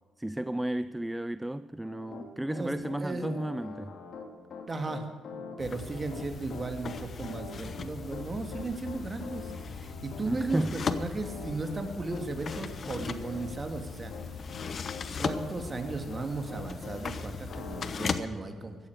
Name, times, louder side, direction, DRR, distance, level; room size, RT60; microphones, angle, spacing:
voice 1, 0.2-4.0 10.3-10.7, right 1 dB, 10° right, 0.4 m, -33 dB
Piano, 1.8-17.0 17.5-17.9, left 4 dB, 65° left, 2.1 m, -45 dB
voice 2, 4.7-5.1 5.6-14.1 15.2-18.8, right 3 dB, 30° right, 2.1 m, -36 dB
sound 1, 5.6-18.2, left 5 dB, 45° left, 0.9 m, -38 dB
15.0 x 14.0 x 4.8 m
cardioid pair, 90°, 0 cm